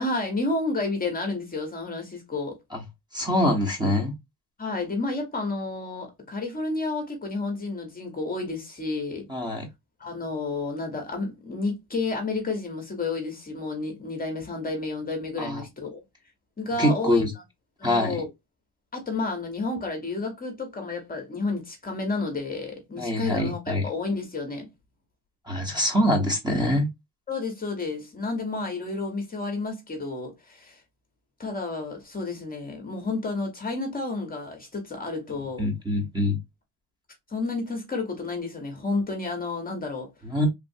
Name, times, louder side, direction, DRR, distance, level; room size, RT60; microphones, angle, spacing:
voice 1, 0.0-2.6 4.6-9.3 10.0-16.0 16.6-17.2 17.8-18.3 18.9-24.7 27.3-30.8 31.4-35.7 37.3-40.1, left 3 dB, 20° left, 0.8 m, -31 dB
voice 2, 3.1-4.1 9.3-9.7 15.4-15.6 16.8-17.3 17.8-18.2 23.0-23.8 25.5-26.9 35.6-36.4 40.2-40.5, left 1 dB, 10° right, 0.8 m, -24 dB
3.2 x 2.4 x 2.6 m
cardioid pair, 150°, 39 cm